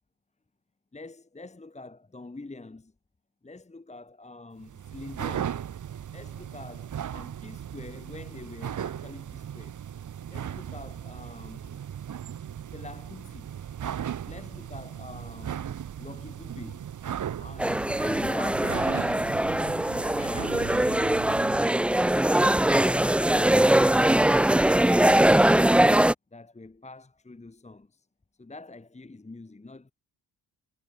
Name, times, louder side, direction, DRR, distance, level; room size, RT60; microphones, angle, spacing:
voice 1, 0.9-2.9 3.4-5.6 6.1-9.8 10.3-11.8 12.7-13.5 14.3-16.9 17.4-19.1 20.0-23.3 25.1-25.8 26.3-28.1 28.4-29.9, left 2 dB, 15° left, 1.8 m, -45 dB
sound 1, 4.6-21.8, right 9 dB, 45° right, 1.1 m, -37 dB
sound 2, 17.6-26.1, right 1 dB, 5° right, 0.4 m, -21 dB
supercardioid pair, 65°, 42 cm